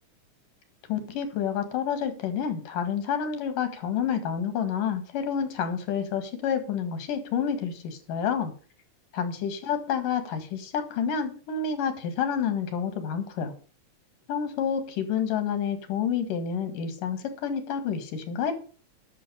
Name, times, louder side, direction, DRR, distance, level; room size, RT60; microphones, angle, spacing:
voice 1, 0.9-8.5 9.2-13.5 14.3-18.5, left 7 dB, 85° left, 8 dB, 3.5 m, -29 dB
11.5 x 7.0 x 6.9 m, 0.38 s
omnidirectional pair, 3.7 m